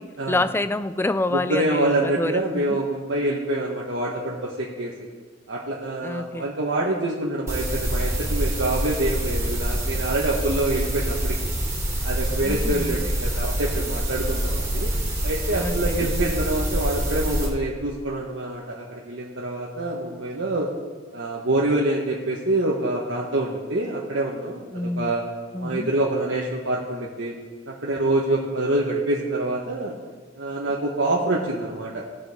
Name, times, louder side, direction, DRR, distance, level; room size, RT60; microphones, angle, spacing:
voice 1, 0.0-2.8 6.0-6.5 12.4-13.1 15.6-16.1 24.7-25.2 25.5-25.9, left 2 dB, 10° left, 13 dB, 0.3 m, -28 dB
voice 2, 1.3-4.9 5.5-11.5 12.0-14.9 15.2-20.7 21.1-24.6 25.0-25.2 25.6-27.3 27.7-29.9 30.4-32.0, right 2 dB, 75° right, -4 dB, 1.3 m, -26 dB
sound 1, 7.5-17.5, right 1 dB, 15° right, 2.1 m, -26 dB
17.0 x 6.3 x 4.9 m, 1.5 s
head